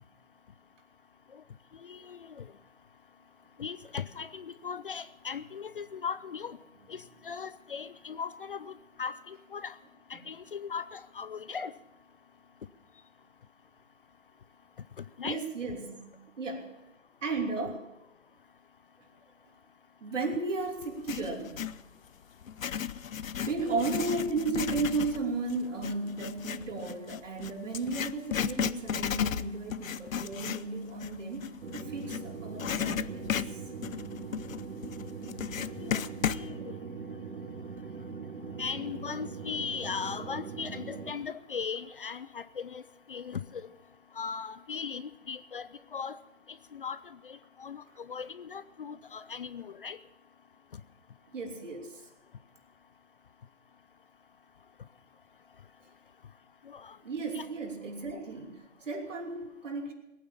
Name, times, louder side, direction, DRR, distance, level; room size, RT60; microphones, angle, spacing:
voice 1, 1.8-2.4 3.6-6.6 6.9-9.8 10.1-11.7 15.0-15.4 23.7-23.9 35.8-36.0 36.3-36.8 38.6-42.8 43.1-43.7 44.2-46.2 46.7-50.0 56.7-57.0 57.3-57.5, left 6 dB, 45° left, 16 dB, 0.5 m, -38 dB
voice 2, 15.2-16.7 17.2-17.8 20.0-21.7 23.5-33.6 51.3-52.0 57.0-59.9, right 3 dB, 65° right, 3 dB, 3.1 m, -34 dB
Writing, 20.8-21.8 22.4-32.2 32.6-36.5, left 8 dB, 80° left, 0.7 m, -34 dB
sound 1, 31.6-41.1, right 5 dB, 80° right, 1.4 m, -41 dB
19.0 x 9.2 x 7.0 m, 0.93 s
hypercardioid pair, 150°, 40 cm